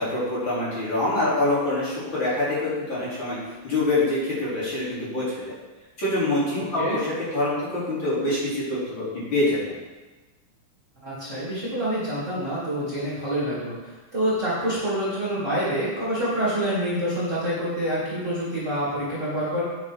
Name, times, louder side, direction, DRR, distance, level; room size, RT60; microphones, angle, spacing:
voice 1, 0.0-3.4 3.6-5.5 6.0-9.5, left 2 dB, 40° left, -9 dB, 3.8 m, -25 dB
voice 2, 11.0-19.6, equal, 25° right, -9 dB, 2.8 m, -27 dB
9.1 x 9.0 x 3.7 m, 1.2 s
omnidirectional pair, 3.5 m